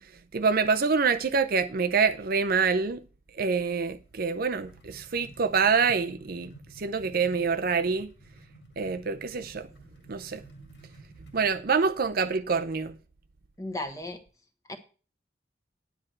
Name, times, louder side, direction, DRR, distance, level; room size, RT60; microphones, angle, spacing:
voice 1, 0.3-3.0 3.4-8.1 8.8-9.7 10.1-10.4 11.3-13.0, right 5 dB, 55° right, 0.6 m, -26 dB
sound 1, 4.1-11.6, right 2 dB, 75° left, 2.2 m, -52 dB
voice 2, 13.6-14.2 14.7-14.8, left 1 dB, 20° left, 1.2 m, -35 dB
9.9 x 7.9 x 4.5 m
head